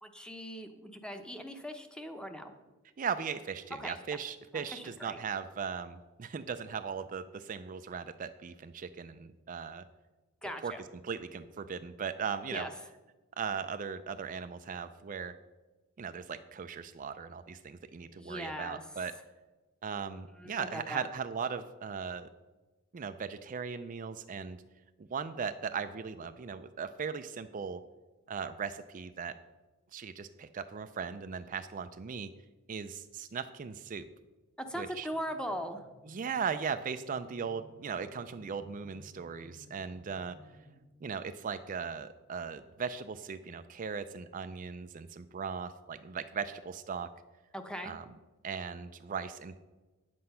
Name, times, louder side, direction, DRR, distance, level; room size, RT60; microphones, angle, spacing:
voice 1, 0.0-2.5 3.8-4.0 4.5-5.2 10.4-10.8 12.5-12.7 18.2-18.8 20.4-21.0 34.6-35.8 47.5-47.9, equal, 5° left, 6 dB, 0.8 m, -40 dB
voice 2, 3.0-9.8 10.6-10.7 11.0-12.7 13.4-15.3 16.0-19.1 19.8-22.3 22.9-24.6 25.0-27.8 28.3-29.3 29.9-32.3 32.7-34.1 34.8-35.1 36.1-40.4 41.0-47.1 47.8-48.0 48.4-49.6, right 6 dB, 40° right, 9 dB, 0.4 m, -38 dB
sound 1, 34.6-40.8, equal, 55° left, 3.1 m, -59 dB
9.6 x 7.7 x 5.6 m, 1.2 s
head